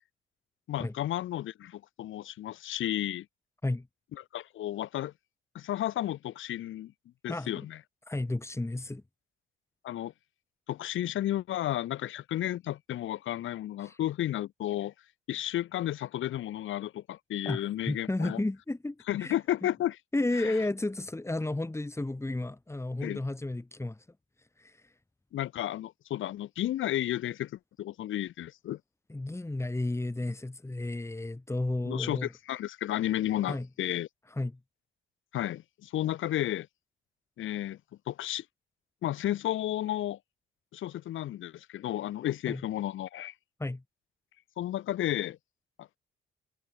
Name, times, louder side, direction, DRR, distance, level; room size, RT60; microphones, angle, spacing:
voice 1, 0.7-3.3 4.2-5.1 5.5-6.9 7.2-7.8 9.8-10.1 10.7-14.9 15.3-18.4 19.1-20.0 20.4-20.5 23.0-23.2 25.3-28.8 31.8-34.1 35.3-36.7 37.4-37.8 38.1-38.4 39.0-40.2 40.7-43.3 44.6-45.4 45.8-45.9, left 13 dB, 80° left, 4.4 m, -32 dB
voice 2, 7.3-7.7 8.1-9.0 13.8-14.0 17.4-17.6 17.9-19.4 20.1-24.1 24.6-24.9 29.1-32.3 33.5-33.7 34.3-34.6 42.5-42.6 43.6-43.8, left 2 dB, 15° left, 7.3 m, -32 dB
cardioid pair, 90°, 20 cm